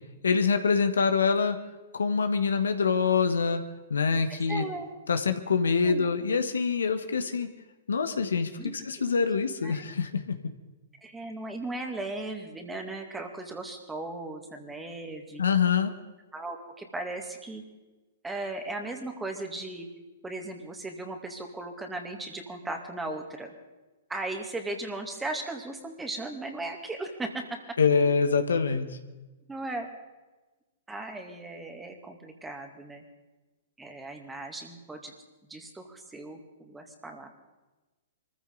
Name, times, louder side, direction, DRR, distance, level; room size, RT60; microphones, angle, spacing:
voice 1, 0.2-1.6 1.9-3.6 3.9-4.6 5.1-7.5 7.9-8.5 8.8-10.5 15.4-15.9 27.8-28.9, left 5 dB, 80° left, 8 dB, 1.4 m, -25 dB
voice 2, 4.5-4.9 5.6-6.2 8.6-9.1 9.6-9.8 11.0-15.4 16.3-17.6 18.2-19.9 20.2-23.5 24.1-27.6 29.5-29.9 30.9-33.0 33.8-35.1 35.5-37.3, right 2 dB, 10° right, 4 dB, 2.4 m, -37 dB
24.0 x 15.0 x 4.0 m, 1.2 s
hypercardioid pair, 115°, 0 cm